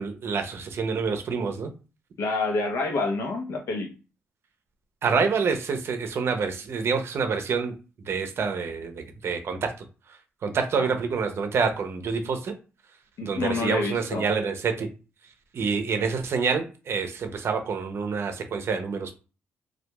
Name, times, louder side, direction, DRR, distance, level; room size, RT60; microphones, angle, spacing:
voice 1, 0.0-1.7 5.0-7.8 8.1-9.7 10.4-12.5 13.2-14.9 15.5-19.1, right 5 dB, 60° right, 0.6 m, -27 dB
voice 2, 2.2-3.9 10.7-10.9 13.2-14.3, left 3 dB, 75° left, 0.7 m, -28 dB
2.8 x 2.3 x 2.2 m
cardioid pair, 85°, 5 cm